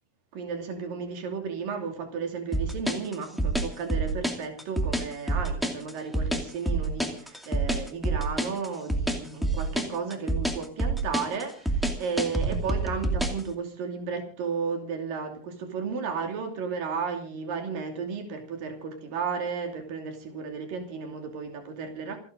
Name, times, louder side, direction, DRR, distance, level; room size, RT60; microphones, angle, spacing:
voice 1, 0.3-22.2, right 5 dB, 85° right, 4.4 m, -33 dB
sound 1, 2.5-13.4, right 2 dB, ahead, 1.8 m, -27 dB
28.5 x 11.0 x 3.9 m
omnidirectional pair, 3.8 m